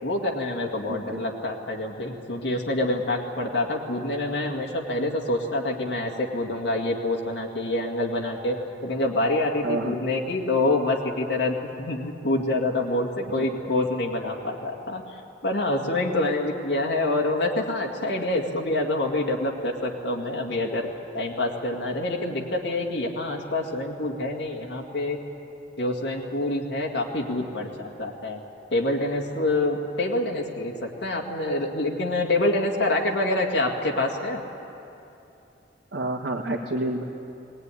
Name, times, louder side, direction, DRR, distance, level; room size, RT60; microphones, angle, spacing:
voice 1, 0.0-15.0 15.4-20.9 21.1-25.2 25.8-28.4 28.7-34.4, left 2 dB, 75° left, -1 dB, 2.2 m, -26 dB
voice 2, 0.9-1.2 9.6-10.0 13.3-13.5 35.9-37.0, right 1 dB, 90° right, -3 dB, 1.7 m, -29 dB
20.5 x 18.0 x 9.9 m, 2.8 s
head